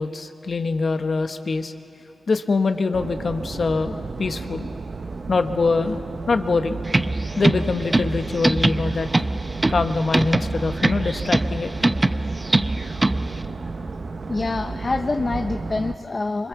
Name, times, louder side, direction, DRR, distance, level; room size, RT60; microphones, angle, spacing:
voice 1, 0.0-1.7 2.3-4.7 5.3-6.0 6.3-6.8 7.4-9.1 9.7-11.7, left 4 dB, 55° left, 8 dB, 1.1 m, -24 dB
sound 1, 2.9-15.9, right 3 dB, 55° right, 0.9 m, -33 dB
sound 2, 6.9-13.4, right 2 dB, 25° right, 0.6 m, -23 dB
voice 2, 14.3-16.5, left 3 dB, 40° left, 7 dB, 0.7 m, -26 dB
26.0 x 21.5 x 7.2 m, 2.7 s
cardioid pair, 70°, 0 cm